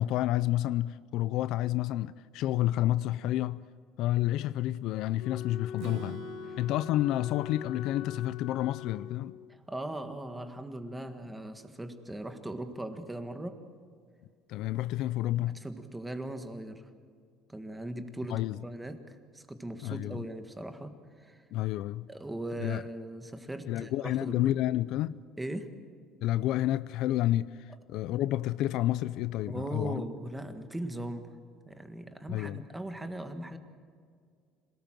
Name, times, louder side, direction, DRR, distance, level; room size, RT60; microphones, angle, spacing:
voice 1, 0.0-3.6 4.0-6.2 6.6-9.4 14.5-15.6 18.3-18.6 19.8-20.2 21.5-22.1 22.6-22.8 23.7-25.1 26.2-30.0 32.3-32.6, left 14 dB, 60° left, 0.5 m, -30 dB
Wind instrument woodwind instrument, 5.2-9.6, left 9 dB, 85° left, 1.4 m, -43 dB
Strum, 5.8-9.7, right 10 dB, 65° right, 1.3 m, -49 dB
voice 2, 9.5-13.6 15.4-16.9 17.5-21.4 22.1-24.5 25.4-25.7 29.5-31.4 31.6-33.6, right 1 dB, 5° right, 1.6 m, -39 dB
26.5 x 18.5 x 7.6 m
cardioid pair, 155°, 0 cm